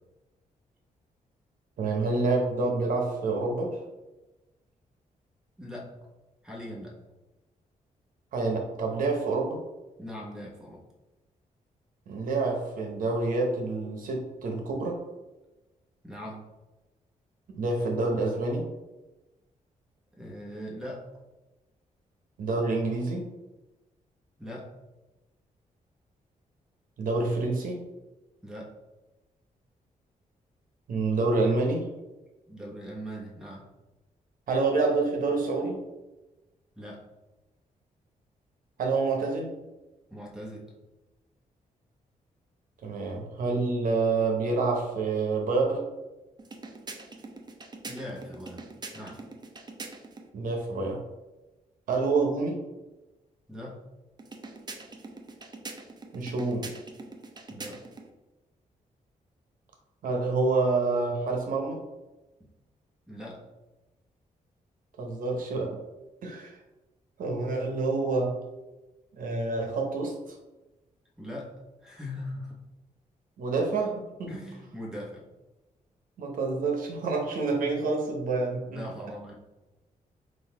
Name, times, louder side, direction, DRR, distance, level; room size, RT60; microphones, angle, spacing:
voice 1, 1.8-3.8 8.3-9.6 12.1-15.0 17.6-18.7 22.4-23.3 27.0-27.8 30.9-31.9 34.5-35.8 38.8-39.6 42.8-45.9 50.3-51.0 51.9-52.6 56.1-56.7 60.0-61.8 65.0-65.8 66.2-66.6 67.2-68.3 69.2-70.3 73.4-74.3 76.2-78.8, right 3 dB, 75° right, 1 dB, 0.9 m, -27 dB
voice 2, 5.6-5.9 6.4-7.0 10.0-10.8 16.0-16.4 20.2-21.1 24.4-24.7 28.4-28.7 32.5-33.7 36.7-37.0 40.1-40.7 47.9-49.2 53.5-53.8 57.5-57.8 63.1-63.4 71.2-72.6 74.3-75.3 78.6-79.3, equal, 5° right, -3 dB, 1.2 m, -40 dB
sound 1, 46.4-50.3 54.2-58.1, right 3 dB, 30° right, 0.6 m, -44 dB
3.9 x 2.6 x 4.6 m, 1.1 s
cardioid pair, 110°, 14 cm